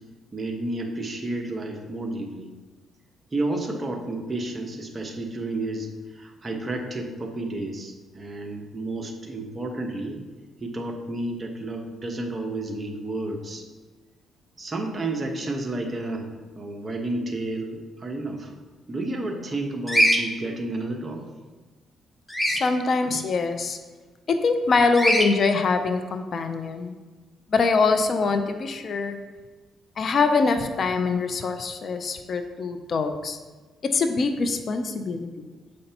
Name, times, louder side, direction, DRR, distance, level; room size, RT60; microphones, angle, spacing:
voice 1, 0.3-2.5 3.3-10.2 10.6-13.6 14.6-16.3 16.5-18.5 18.9-21.2, right 2 dB, 30° right, 2 dB, 1.0 m, -31 dB
Bird vocalization bird call bird song, 19.9-20.2 22.3-22.6 24.9-25.3, equal, 5° left, 0.8 m, -20 dB
voice 2, 22.5-23.8 24.3-26.9 27.5-29.2 30.0-33.4 33.9-35.5, left 4 dB, 50° left, 7 dB, 0.5 m, -24 dB
7.7 x 5.3 x 2.9 m, 1.3 s
cardioid pair, 90°, 0 cm